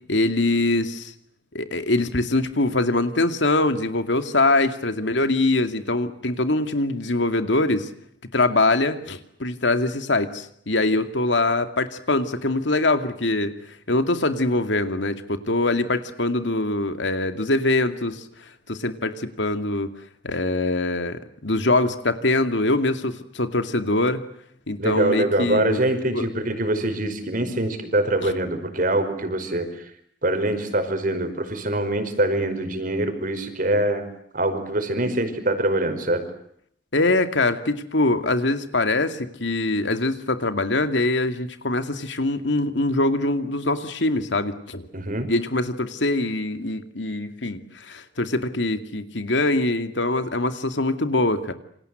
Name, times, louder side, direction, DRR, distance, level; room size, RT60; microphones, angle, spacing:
voice 1, 0.1-1.1 1.5-7.9 8.3-13.5 13.9-19.9 20.2-24.2 24.7-25.8 26.1-26.3 28.2-28.3 36.9-44.9 45.3-51.5, left 2 dB, 80° left, 8 dB, 2.4 m, -23 dB
voice 2, 24.8-29.7 30.2-34.0 34.3-36.2 44.9-45.3, right 1 dB, 50° right, 8 dB, 5.3 m, -24 dB
28.0 x 26.0 x 8.0 m, 0.69 s
head